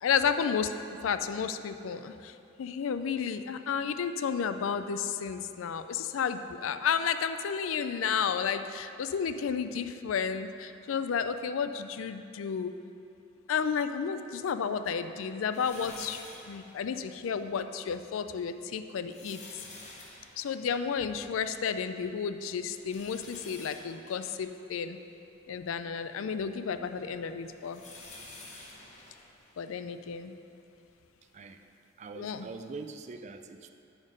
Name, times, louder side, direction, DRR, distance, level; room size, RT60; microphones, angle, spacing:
voice 1, 0.0-0.8 1.0-12.8 13.5-19.4 20.4-25.0 25.5-27.8 29.6-30.3 32.2-32.5, left 6 dB, 85° left, 10 dB, 0.4 m, -32 dB
sound 1, 15.5-17.4 17.9-18.0 18.7-21.7 22.0-22.1 22.6-25.6 26.3-30.2 30.9-31.0 32.3-32.4, left 2 dB, 35° left, 1.0 m, -50 dB
voice 2, 31.3-31.7 32.0-33.7, right 4 dB, 35° right, 8 dB, 0.3 m, -43 dB
11.0 x 3.6 x 5.4 m, 2.7 s
head